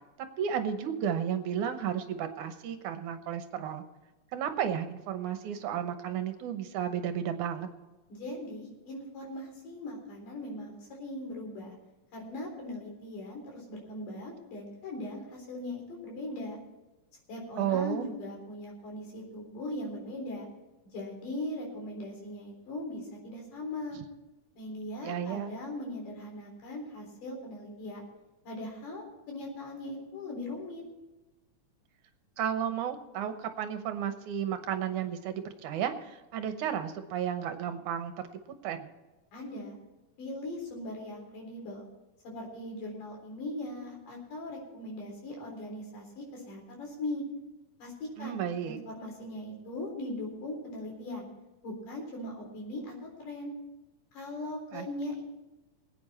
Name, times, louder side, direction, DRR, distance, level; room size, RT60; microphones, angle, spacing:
voice 1, 0.4-3.8 4.3-7.7 17.6-18.1 25.0-25.5 32.4-38.3 38.6-38.9 48.2-48.8 54.7-54.9, right 9 dB, 75° right, 8 dB, 2.3 m, -33 dB
voice 2, 8.1-11.7 12.1-16.6 17.3-20.5 20.9-24.0 24.6-28.0 28.5-30.8 39.3-39.8 40.2-41.9 42.2-47.2 47.8-51.3 51.6-53.5 54.1-55.2, left 1 dB, 75° left, 0 dB, 5.5 m, -39 dB
21.5 x 9.0 x 4.3 m, 1.1 s
omnidirectional pair, 3.8 m